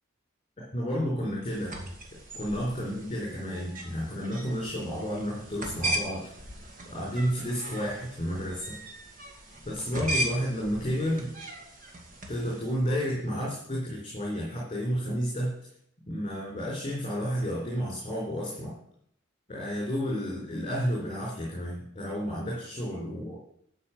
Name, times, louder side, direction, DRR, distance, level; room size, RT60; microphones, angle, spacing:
voice 1, 0.7-1.7 2.3-6.3 6.9-8.7 9.6-11.3 12.3-15.5 16.1-18.7 19.5-23.4, equal, 30° left, -4 dB, 4.2 m, -31 dB
sound 1, 1.4-12.8, right 1 dB, 45° right, 2.3 m, -37 dB
12.5 x 5.5 x 8.6 m, 0.70 s
head